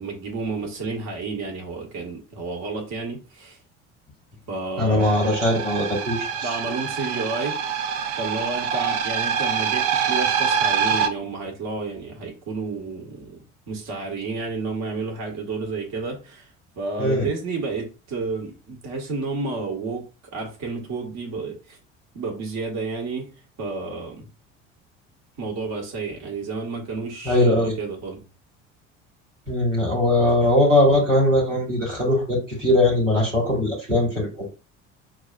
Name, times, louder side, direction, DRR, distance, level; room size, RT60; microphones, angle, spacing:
voice 1, 0.0-3.6 4.5-5.1 6.4-7.8 8.2-16.5 16.8-20.0 20.3-21.8 22.1-23.3 23.6-24.3 25.4-28.2, right 3 dB, 50° right, 1.3 m, -31 dB
voice 2, 4.8-6.5 17.0-17.3 27.2-27.7 29.5-34.5, left 1 dB, 90° right, 1.7 m, -20 dB
sound 1, 5.0-11.1, right 7 dB, 70° right, 0.6 m, -25 dB
5.9 x 2.4 x 2.2 m
figure-of-eight pair, 60°, 37 cm